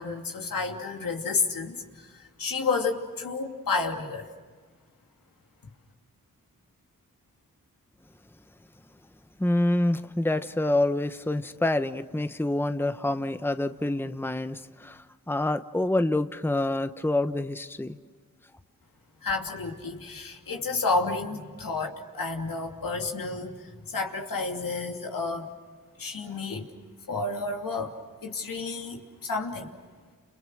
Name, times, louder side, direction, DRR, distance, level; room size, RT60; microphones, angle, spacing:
voice 1, 0.0-4.3 19.2-25.5 26.0-26.7 27.1-27.9 28.2-29.7, left 3 dB, 80° left, 2 dB, 2.9 m, -31 dB
voice 2, 9.4-18.0, left 1 dB, 5° left, 10 dB, 1.1 m, -27 dB
30.0 x 29.5 x 6.4 m, 1.5 s
cardioid pair, 45°, 33 cm